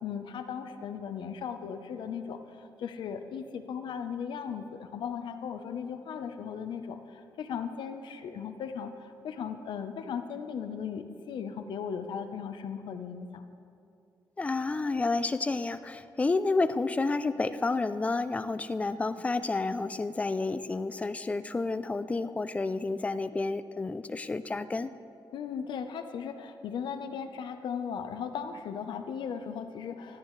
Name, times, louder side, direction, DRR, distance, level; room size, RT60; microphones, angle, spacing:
voice 1, 0.0-13.4 25.3-30.2, left 7 dB, 85° left, 8 dB, 0.8 m, -37 dB
voice 2, 14.4-24.9, left 3 dB, 15° left, 12 dB, 0.4 m, -30 dB
19.5 x 13.0 x 3.2 m, 2.5 s
wide cardioid pair, 175°, 8 cm